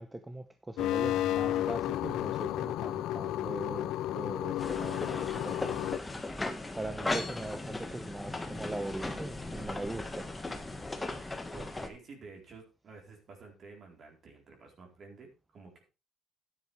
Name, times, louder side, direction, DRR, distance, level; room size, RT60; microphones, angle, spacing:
voice 1, 0.0-5.7 6.7-10.3, right 2 dB, 10° right, 0.8 m, -41 dB
sound 1, 0.8-6.0, left 13 dB, 75° left, 0.5 m, -32 dB
sound 2, 4.6-11.9, left 2 dB, 10° left, 1.6 m, -37 dB
voice 2, 11.5-15.8, right 4 dB, 40° right, 4.1 m, -51 dB
12.0 x 9.9 x 3.4 m
cardioid pair, 125°, 0 cm